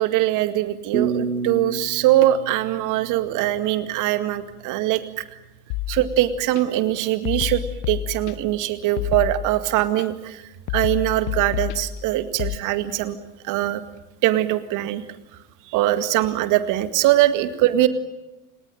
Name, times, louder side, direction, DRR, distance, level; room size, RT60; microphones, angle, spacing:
voice 1, 0.0-5.2 5.9-10.4 10.7-13.2 13.4-13.8 14.2-15.0 15.7-17.9, right 14 dB, 45° right, 11 dB, 2.1 m, -22 dB
sound 1, 0.9-3.9, right 5 dB, 75° right, 1.9 m, -29 dB
sound 2, 5.7-6.6 7.2-8.6 9.0-10.0 10.7-12.6, left 13 dB, 50° left, 1.3 m, -30 dB
29.5 x 19.0 x 9.2 m, 1.0 s
figure-of-eight pair, 80°, 45 cm